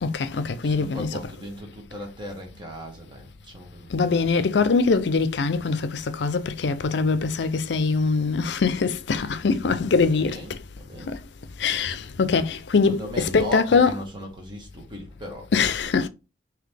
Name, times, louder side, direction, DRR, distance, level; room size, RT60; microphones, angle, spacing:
voice 1, 0.0-1.1 3.9-10.4 11.1-11.2 11.6-13.9 15.5-16.1, left 4 dB, 70° left, 0.5 m, -23 dB
voice 2, 0.5-3.9 9.9-11.2 12.8-15.5 15.8-15.9, equal, 25° right, 1.2 m, -37 dB
3.9 x 2.9 x 3.3 m
head